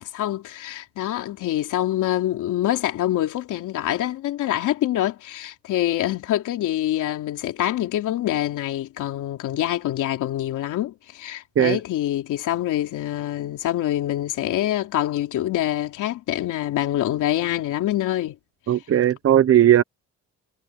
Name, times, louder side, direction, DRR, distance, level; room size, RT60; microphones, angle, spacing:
voice 1, 0.0-18.4, left 13 dB, 85° left, 3.3 m, -25 dB
voice 2, 18.7-19.8, right 11 dB, 50° right, 1.0 m, -17 dB
cardioid pair, 90°, 30 cm